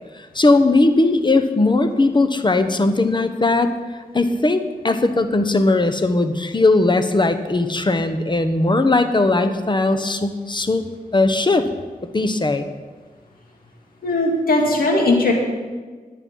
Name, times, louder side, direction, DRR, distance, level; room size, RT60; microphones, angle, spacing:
voice 1, 0.3-3.7 4.1-10.8 11.1-11.7 12.1-12.7, left 2 dB, 30° left, 9 dB, 1.1 m, -18 dB
voice 2, 14.0-15.3, left 2 dB, 75° left, 0 dB, 2.3 m, -18 dB
11.0 x 9.2 x 5.5 m, 1.4 s
cardioid pair, 45°, 15 cm